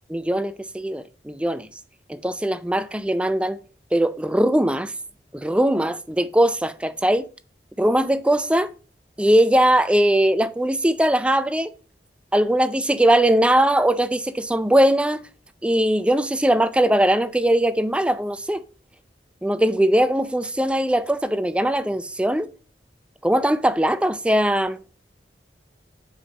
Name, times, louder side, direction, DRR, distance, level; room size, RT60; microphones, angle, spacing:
voice 1, 0.1-1.7 2.1-3.6 3.9-4.9 5.3-7.3 7.8-8.7 9.2-11.7 12.3-15.2 15.6-18.6 19.4-22.5 23.2-24.8, right 1 dB, 5° right, 0.4 m, -20 dB
7.2 x 5.3 x 5.0 m
head